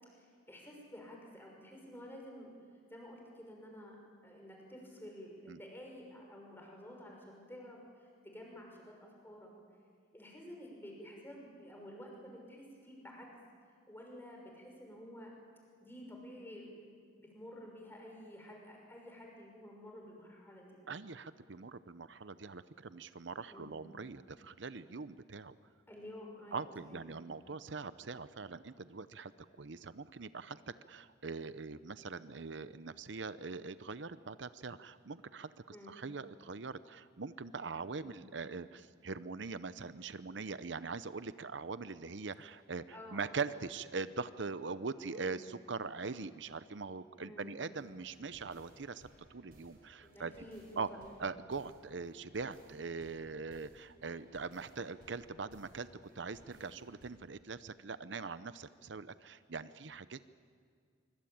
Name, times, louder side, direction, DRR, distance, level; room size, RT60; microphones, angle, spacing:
voice 1, 0.1-2.5 2.9-4.0 4.2-9.5 10.1-13.3 13.9-15.3 15.8-20.8 23.5-23.8 25.9-27.1 35.7-36.0 38.0-38.2 42.9-43.5 44.9-45.4 47.2-47.6 50.0-51.2, equal, 10° left, 0 dB, 6.1 m, -51 dB
voice 2, 20.9-25.5 26.5-29.3 29.6-50.3 50.8-50.9 51.2-55.9 56.2-60.2, right 4 dB, 70° right, 14 dB, 0.8 m, -42 dB
sound 1, 47.7-57.1, equal, 50° right, 7.0 m, -62 dB
24.5 x 24.0 x 8.8 m, 2.1 s
head